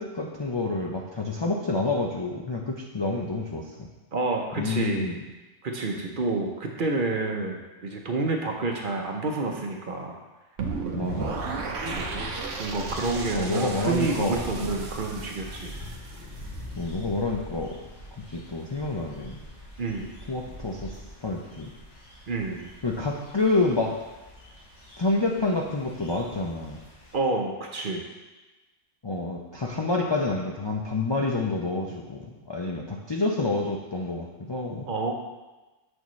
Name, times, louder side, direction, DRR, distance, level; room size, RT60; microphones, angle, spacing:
voice 1, 0.0-3.7 4.6-5.1 10.9-11.3 13.3-14.8 16.8-17.8 18.3-19.4 20.3-20.9 21.2-21.7 22.8-23.9 25.0-26.8 29.0-34.9, left 3 dB, 40° left, -1 dB, 0.3 m, -28 dB
voice 2, 4.1-5.1 5.6-10.2 11.9-12.1 12.6-15.7 19.8-20.1 22.3-22.7 27.1-28.0 34.9-35.1, right 3 dB, 50° right, 1 dB, 0.8 m, -29 dB
sound 1, 10.6-16.6, right 4 dB, 80° right, 1.1 m, -35 dB
sound 2, 11.0-27.2, equal, 60° left, 1.6 m, -42 dB
7.0 x 6.3 x 3.1 m, 1.2 s
omnidirectional pair, 1.3 m